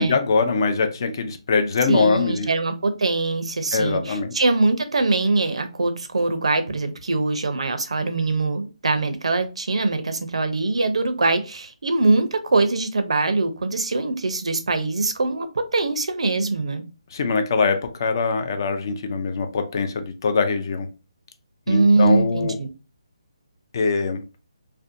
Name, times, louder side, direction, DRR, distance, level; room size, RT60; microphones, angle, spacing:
voice 1, 0.0-2.5 3.7-4.3 17.1-20.9 21.7-22.6 23.7-24.2, left 4 dB, 40° left, 0.4 m, -22 dB
voice 2, 1.9-16.9 21.7-22.7, right 3 dB, 75° right, 0.5 m, -22 dB
2.5 x 2.1 x 2.5 m
hypercardioid pair, 165°, 3 cm